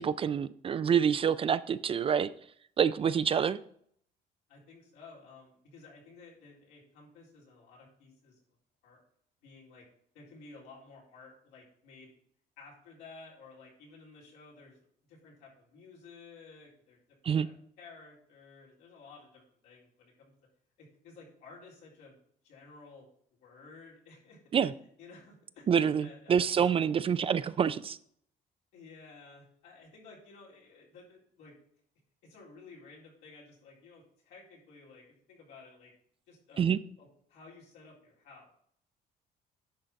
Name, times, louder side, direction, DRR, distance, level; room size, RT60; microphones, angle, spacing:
voice 1, 0.0-2.3 2.8-3.6 17.2-17.5 24.5-24.7 25.7-28.0 36.6-36.8, right 7 dB, 35° right, 15 dB, 0.4 m, -27 dB
voice 2, 4.5-8.4 8.8-9.0 9.4-9.8 10.1-12.1 12.6-17.0 17.4-20.3 20.8-22.1 22.4-23.1 23.4-24.4 25.0-25.7 26.0-26.5 28.7-31.5 32.2-35.9 36.3-36.6 37.0-38.5, left 4 dB, 85° left, -4 dB, 3.8 m, -54 dB
10.5 x 3.9 x 5.8 m, 0.65 s
cardioid pair, 110°, 17 cm